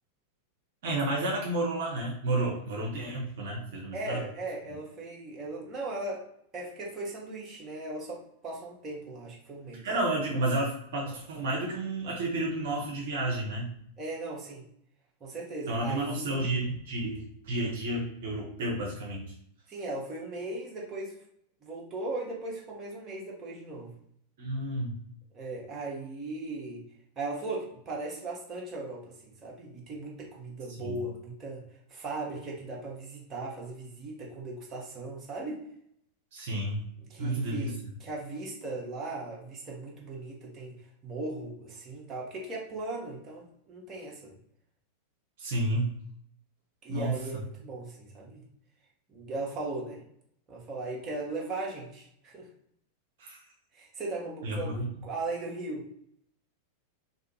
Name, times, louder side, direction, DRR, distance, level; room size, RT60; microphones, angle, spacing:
voice 1, 0.8-4.3 9.8-13.7 15.7-19.2 24.4-25.0 30.8-31.0 36.3-36.8 37.2-37.7 45.4-45.9 46.9-47.1 53.2-53.4 54.4-54.8, right 1 dB, 55° right, -2 dB, 0.7 m, -31 dB
voice 2, 3.9-6.3 6.5-9.9 14.0-14.7 15.2-16.4 19.7-21.1 21.6-23.9 25.3-26.8 27.2-31.6 31.9-35.6 37.1-40.8 41.0-44.3 46.8-48.4 49.1-50.0 50.5-52.5 53.7-54.8 55.0-55.9, right 2 dB, 25° right, -3 dB, 0.8 m, -38 dB
2.7 x 2.4 x 2.8 m, 0.70 s
figure-of-eight pair, 90°, 0 cm